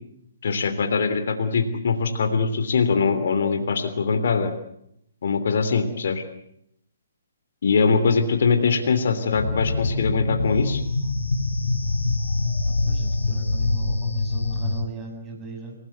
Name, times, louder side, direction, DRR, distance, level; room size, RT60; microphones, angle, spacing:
voice 1, 0.4-4.5 5.2-6.2 7.6-10.8, left 5 dB, 55° left, 7 dB, 3.1 m, -22 dB
sound 1, 9.3-14.8, left 2 dB, 75° left, 2.3 m, -25 dB
voice 2, 12.7-15.8, right 4 dB, 20° right, 2 dB, 7.4 m, -38 dB
28.0 x 18.0 x 8.2 m, 0.75 s
figure-of-eight pair, 130°, 0 cm